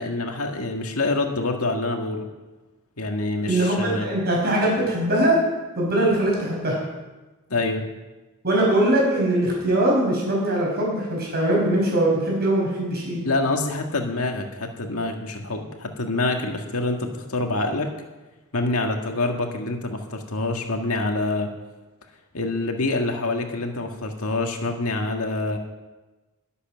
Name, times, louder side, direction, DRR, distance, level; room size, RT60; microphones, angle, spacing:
voice 1, 0.0-2.3 3.0-4.1 7.5-7.8 13.2-17.9 18.5-21.5 22.3-25.6, left 2 dB, 75° left, 3 dB, 1.8 m, -26 dB
voice 2, 3.5-5.4 5.8-6.8 8.4-13.2, right 1 dB, 45° right, -3 dB, 5.8 m, -21 dB
21.5 x 8.2 x 6.3 m, 1.1 s
head